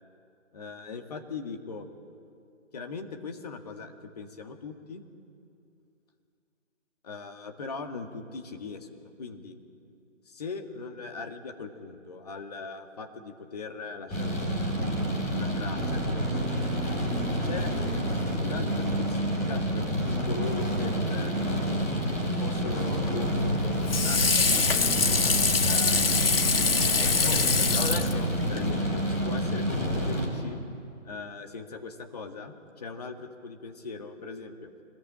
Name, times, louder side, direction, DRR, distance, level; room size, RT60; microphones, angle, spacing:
voice 1, 0.5-1.9 2.7-5.0 7.0-9.6 10.3-14.7 15.3-16.5 17.4-17.7 18.4-19.9 20.3-21.4 22.2-25.2 25.6-26.3 27.0-30.6 31.0-34.7, left 4 dB, 30° left, 4 dB, 1.9 m, -40 dB
sound 1, 14.1-30.3, equal, 15° left, 4.4 m, -28 dB
Water / Sink (filling or washing), 23.2-28.7, left 4 dB, 50° left, 1.5 m, -25 dB
25.0 x 20.5 x 8.9 m, 2.5 s
figure-of-eight pair, 155°, 38 cm